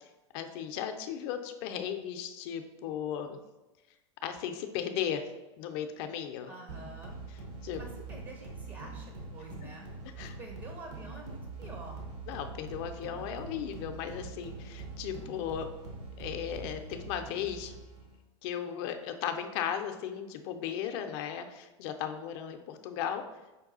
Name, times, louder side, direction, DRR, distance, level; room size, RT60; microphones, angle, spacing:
voice 1, 0.3-3.4 4.2-5.2 5.6-6.5 7.3-7.8 9.6-9.7 10.2-10.3 12.3-15.7 16.2-17.7 18.4-23.2, left 9 dB, 60° left, 7 dB, 0.5 m, -36 dB
voice 2, 6.5-7.2 7.8-9.8 10.2-12.0, right 2 dB, 35° right, 2 dB, 0.7 m, -48 dB
sound 1, 6.7-18.2, right 3 dB, 70° right, 1.1 m, -44 dB
5.2 x 2.3 x 3.9 m, 1.1 s
hypercardioid pair, 100°, 15 cm